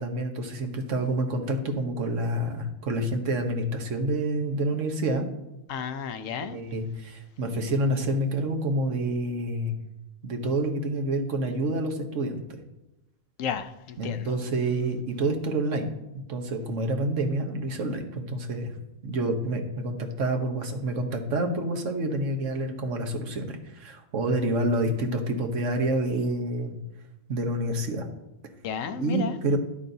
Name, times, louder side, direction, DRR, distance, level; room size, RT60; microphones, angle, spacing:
voice 1, 0.0-5.3 6.5-9.8 10.2-12.6 14.0-15.9 16.3-18.7 19.0-26.7 27.3-28.1 29.0-29.6, right 1 dB, 60° right, 4 dB, 1.3 m, -28 dB
voice 2, 5.7-6.6 13.4-14.3 28.6-29.4, left 7 dB, 70° left, 9 dB, 1.0 m, -33 dB
10.5 x 8.4 x 2.7 m, 0.94 s
omnidirectional pair, 1.5 m